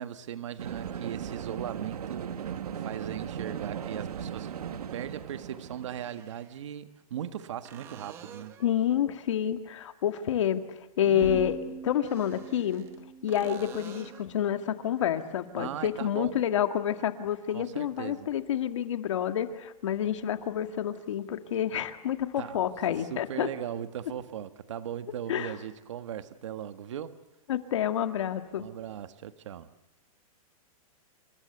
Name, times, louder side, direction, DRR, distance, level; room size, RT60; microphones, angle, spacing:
voice 1, 0.0-4.5 4.9-8.6 11.1-11.5 15.6-16.3 17.5-18.3 22.4-22.6 23.0-27.2 28.6-29.7, right 10 dB, 50° right, 11 dB, 1.6 m, -38 dB
sound 1, 0.6-6.0, right 8 dB, 85° right, 1.8 m, -37 dB
sound 2, 5.8-6.6 7.6-8.8 11.9-13.0 13.3-14.3 18.0-18.1, right 9 dB, 15° right, 1.0 m, -49 dB
voice 2, 8.6-10.6 11.0-11.6 11.8-12.9 13.2-23.5 25.3-25.5 27.5-28.7, left 10 dB, 55° left, 8 dB, 2.1 m, -28 dB
sound 3, 11.2-15.1, left 1 dB, 80° left, 4.9 m, -43 dB
28.5 x 26.0 x 8.0 m, 0.88 s
hypercardioid pair, 180°, 19 cm